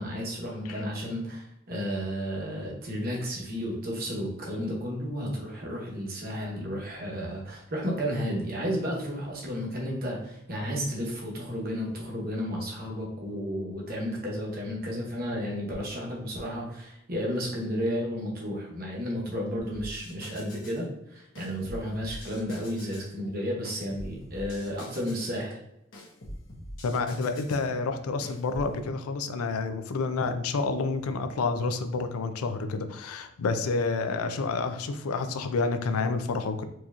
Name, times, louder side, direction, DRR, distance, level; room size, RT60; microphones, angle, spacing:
voice 1, 0.0-25.6, equal, 45° right, -2 dB, 1.0 m, -32 dB
sound 1, 19.6-20.8 21.4-23.1 23.6-25.4 25.9-27.7 28.2-28.7, equal, 65° left, 1.0 m, -44 dB
voice 2, 26.8-36.6, left 4 dB, 85° left, 8 dB, 0.4 m, -29 dB
4.6 x 2.8 x 2.4 m, 0.82 s
head